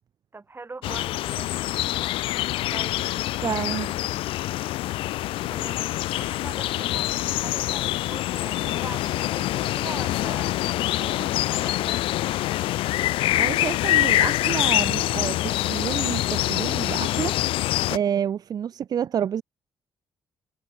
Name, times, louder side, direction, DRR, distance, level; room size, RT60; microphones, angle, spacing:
voice 1, 0.3-1.6 2.7-4.3 5.4-10.6 11.0-12.0 13.0-14.0 18.0-18.3, right 3 dB, 25° right, 4.1 m, -43 dB
sound 1, 0.8-18.0, left 16 dB, 85° left, 0.4 m, -25 dB
voice 2, 3.4-3.9 13.4-17.4 17.9-19.4, right 9 dB, 45° right, 0.3 m, -29 dB
cardioid pair, 80°, 9 cm